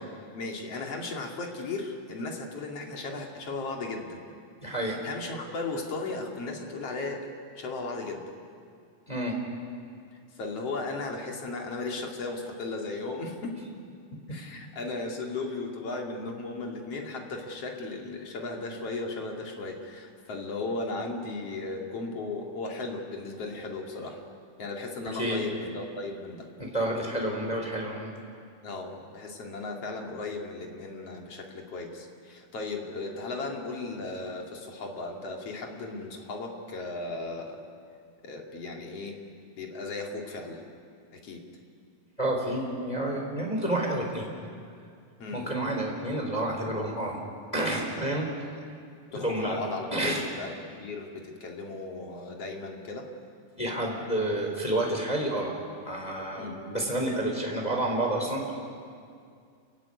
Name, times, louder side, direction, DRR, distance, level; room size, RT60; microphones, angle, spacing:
voice 1, 0.3-4.2 4.8-8.2 10.4-13.6 14.3-24.2 24.6-26.5 28.6-37.6 38.2-39.2 39.6-40.6 41.1-41.4 45.2-45.5 49.1-50.5 50.8-53.1 56.4-56.6, left 3 dB, 45° left, 1 dB, 3.2 m, -36 dB
voice 2, 4.6-5.0 9.1-9.4 14.1-14.4 25.1-25.4 26.6-28.1 42.2-44.3 45.3-47.2 47.5-48.3 49.1-49.6 49.9-50.3 53.6-55.6 55.8-58.6, right 1 dB, 10° left, 0 dB, 3.2 m, -29 dB
29.0 x 16.0 x 9.7 m, 2.3 s
omnidirectional pair, 4.2 m